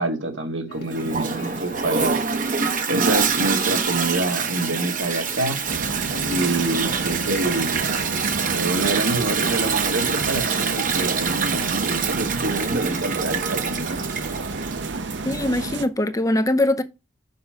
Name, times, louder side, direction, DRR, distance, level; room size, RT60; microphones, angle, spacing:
voice 1, 0.0-2.2 2.5-2.6 2.9-5.6 6.3-7.9 8.5-14.1, right 2 dB, 85° right, 2.2 m, -26 dB
sound 1, 0.7-10.2, left 2 dB, 55° left, 1.4 m, -41 dB
Toilet flush, 0.9-15.5, right 6 dB, 45° right, 1.0 m, -26 dB
sound 2, 5.7-15.9, right 3 dB, 60° right, 0.8 m, -29 dB
voice 2, 15.2-16.8, left 1 dB, 15° left, 0.6 m, -22 dB
6.7 x 5.3 x 4.6 m
head